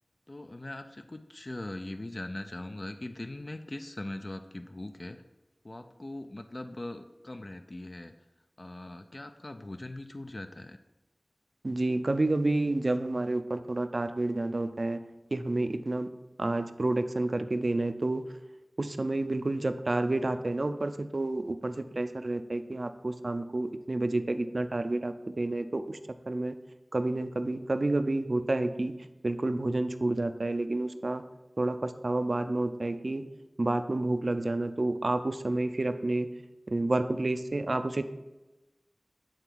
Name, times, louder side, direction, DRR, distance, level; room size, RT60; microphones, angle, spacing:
voice 1, 0.3-5.2 5.6-8.1 8.6-10.8, left 1 dB, 50° left, 7 dB, 0.4 m, -41 dB
voice 2, 11.6-15.0 15.3-16.1 16.4-18.2 18.8-26.0 26.3-26.6 26.9-28.9 29.2-31.2 31.6-33.3 33.6-36.3 36.7-38.0, right 2 dB, 65° right, 10 dB, 0.4 m, -29 dB
8.9 x 3.9 x 4.5 m, 1.0 s
wide cardioid pair, 55°, 0 cm